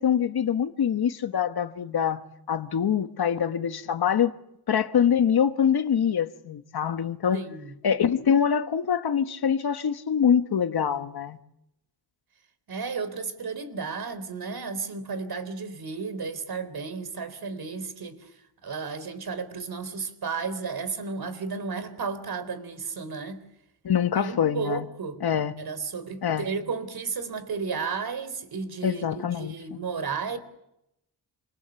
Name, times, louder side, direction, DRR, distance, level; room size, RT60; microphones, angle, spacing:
voice 1, 0.0-2.2 2.5-4.3 4.7-7.4 7.8-11.4 23.8-24.9 25.2-25.5 26.2-26.5 28.8-29.6, left 8 dB, 65° left, 1.4 m, -24 dB
voice 2, 7.3-7.8 12.7-18.3 18.6-23.4 24.1-25.2 25.6-30.4, right 5 dB, 60° right, 4.0 m, -33 dB
28.0 x 27.0 x 7.1 m
wide cardioid pair, 120°, 42 cm